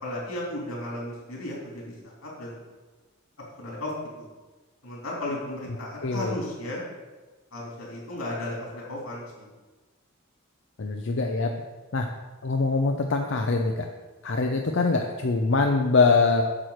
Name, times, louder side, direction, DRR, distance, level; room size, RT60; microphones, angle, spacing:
voice 1, 0.0-2.6 3.6-3.9 4.8-6.8 7.5-9.5, left 1 dB, 85° left, -3 dB, 3.3 m, -34 dB
voice 2, 6.0-6.4 10.8-11.5 11.9-12.1 12.4-13.8 14.2-16.4, left 3 dB, 60° left, 3 dB, 0.6 m, -23 dB
8.9 x 4.5 x 6.6 m, 1.3 s
head